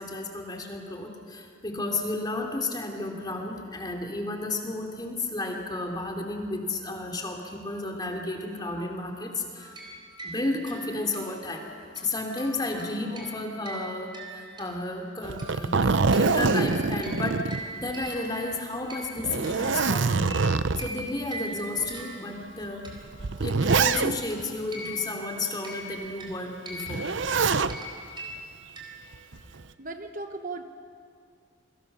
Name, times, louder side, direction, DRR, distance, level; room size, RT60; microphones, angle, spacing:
voice 1, 0.0-9.7 10.2-11.7 11.9-17.4 17.7-20.3 20.8-22.9 23.4-27.1, left 2 dB, 20° left, 2 dB, 3.0 m, -32 dB
sound 1, 9.6-15.1 15.4-23.2 23.6-29.3, right 1 dB, 20° right, 4.0 m, -43 dB
Zipper (clothing), 15.2-18.2 18.5-18.6 19.2-21.0 21.8-21.9 22.9-24.4 26.9-27.8 29.1-29.6, right 4 dB, 65° right, 0.7 m, -25 dB
voice 2, 29.8-30.6, right 3 dB, 40° right, 6 dB, 1.0 m, -36 dB
29.0 x 24.0 x 6.8 m, 2.2 s
head